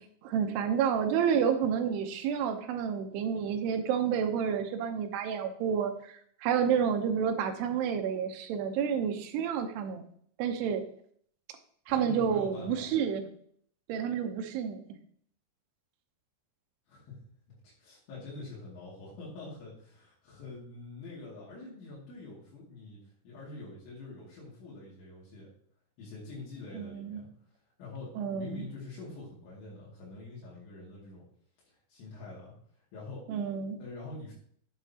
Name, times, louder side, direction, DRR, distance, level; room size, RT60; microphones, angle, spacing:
voice 1, 0.2-6.1 6.4-10.1 10.4-10.8 11.9-13.2 13.9-14.8 26.7-27.2 28.2-28.6 33.3-33.8, right 7 dB, 75° right, 5 dB, 2.6 m, -29 dB
voice 2, 11.9-12.9 16.9-17.2 17.5-23.0 23.2-25.5 26.0-27.3 27.8-31.2 31.7-32.5 32.9-33.2 33.8-34.3, left 3 dB, 85° left, -6 dB, 4.8 m, -45 dB
10.0 x 8.3 x 2.8 m, 0.62 s
omnidirectional pair, 5.3 m